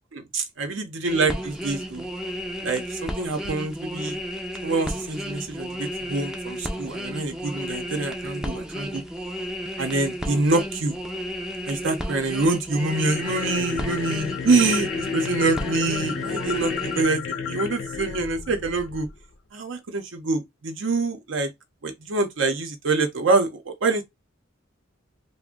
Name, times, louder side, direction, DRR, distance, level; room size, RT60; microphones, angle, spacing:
voice 1, 0.1-2.1 2.6-4.2 4.6-9.0 9.8-11.0 11.7-19.1 19.5-21.5 21.8-24.0, right 3 dB, 70° right, 0.6 m, -25 dB
sound 1, 1.0-17.0, equal, 5° right, 0.4 m, -33 dB
sound 2, 12.9-19.2, left 6 dB, 70° left, 0.7 m, -32 dB
2.5 x 2.0 x 3.6 m
head